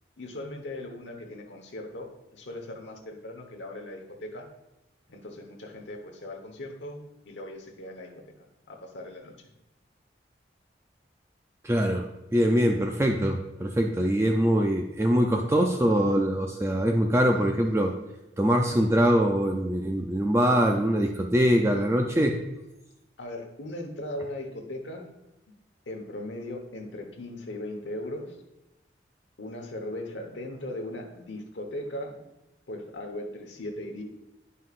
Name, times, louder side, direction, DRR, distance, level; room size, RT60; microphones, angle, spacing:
voice 1, 0.2-4.5 5.1-8.1 8.7-9.5 23.2-25.1 25.9-28.4 29.4-32.2 32.7-34.0, left 1 dB, 85° left, 2 dB, 1.1 m, -38 dB
voice 2, 11.6-17.9 18.4-22.4, equal, 15° right, 2 dB, 0.4 m, -23 dB
9.9 x 5.5 x 2.5 m, 0.95 s
head